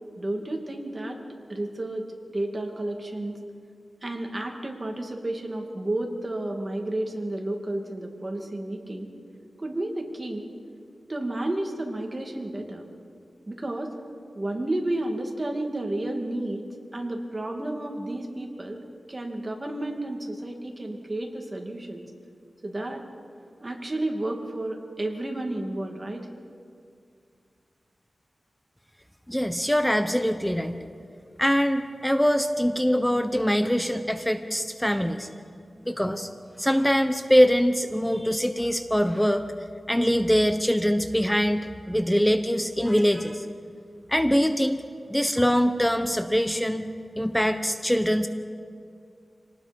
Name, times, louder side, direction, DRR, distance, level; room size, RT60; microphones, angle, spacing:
voice 1, 0.2-1.2 1.5-2.1 2.3-3.4 4.0-9.1 9.6-10.5 11.1-12.9 13.5-13.9 14.3-16.6 16.9-22.0 22.6-23.0 23.6-26.3, right 1 dB, 30° right, 2 dB, 2.6 m, -31 dB
voice 2, 29.3-30.8 31.4-35.3 35.9-36.3 36.6-39.4 39.9-43.5 44.1-44.8 45.1-46.9 47.2-48.3, equal, 5° left, 8 dB, 0.9 m, -23 dB
26.5 x 19.0 x 5.4 m, 2.4 s
wide cardioid pair, 85°, 0 cm